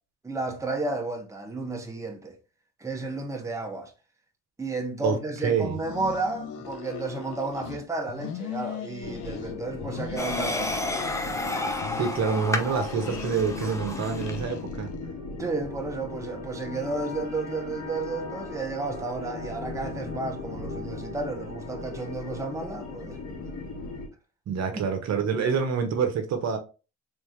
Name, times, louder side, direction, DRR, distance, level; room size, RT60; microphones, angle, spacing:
voice 1, 0.2-2.4 2.8-3.9 4.6-10.9 11.2-11.7 15.4-23.2 24.7-24.9, right 3 dB, 10° right, 1.0 m, -32 dB
voice 2, 5.4-5.8 11.9-14.9 24.5-26.6, right 6 dB, 60° right, 0.9 m, -27 dB
sound 1, 5.7-7.8 8.1-9.5 9.8-11.5 11.8-15.0, left 8 dB, 80° left, 0.8 m, -39 dB
sound 2, 9.0-24.1, left 3 dB, 65° left, 1.9 m, -38 dB
sound 3, 10.2-14.5, left 2 dB, 10° left, 0.7 m, -31 dB
3.5 x 3.4 x 3.2 m
cardioid pair, 90°, 30 cm